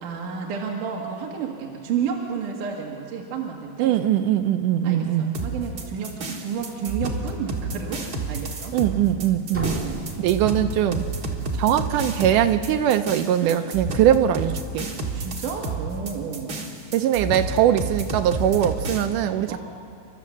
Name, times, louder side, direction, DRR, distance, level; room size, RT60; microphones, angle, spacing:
voice 1, 0.0-4.0 4.8-8.8 9.6-10.0 13.4-13.7 15.1-16.6 19.5-19.6, right 6 dB, 60° right, 0 dB, 2.8 m, -31 dB
voice 2, 3.8-5.4 8.7-9.8 10.2-11.1 11.6-14.9 16.9-19.6, right 11 dB, 85° right, 8 dB, 1.8 m, -21 dB
sound 1, 5.3-19.1, right 3 dB, 40° right, 1.4 m, -30 dB
sound 2, 9.5-11.4, equal, 15° right, 0.4 m, -33 dB
30.0 x 13.0 x 7.4 m, 2.7 s
omnidirectional pair, 4.4 m